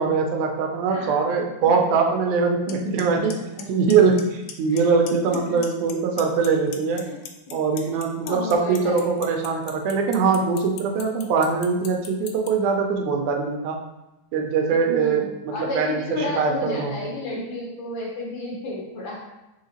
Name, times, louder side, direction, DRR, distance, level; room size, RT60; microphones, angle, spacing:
voice 1, 0.0-3.3 3.7-7.0 7.5-13.8 14.3-16.9, right 5 dB, 85° right, 2 dB, 2.1 m, -22 dB
voice 2, 0.9-1.9 2.8-2.9 3.6-3.7 4.7-4.8 5.3-5.6 7.1-7.2 7.5-7.6 7.8-7.9 8.3-9.3 14.7-19.2, left 2 dB, 65° left, -4 dB, 2.1 m, -32 dB
Clock, 2.7-2.8 3.0-3.3 3.6-4.2 4.5-4.8 5.1-5.9 6.2-12.5, left 10 dB, 90° left, 2.0 m, -37 dB
5.6 x 3.3 x 2.9 m, 0.96 s
omnidirectional pair, 3.5 m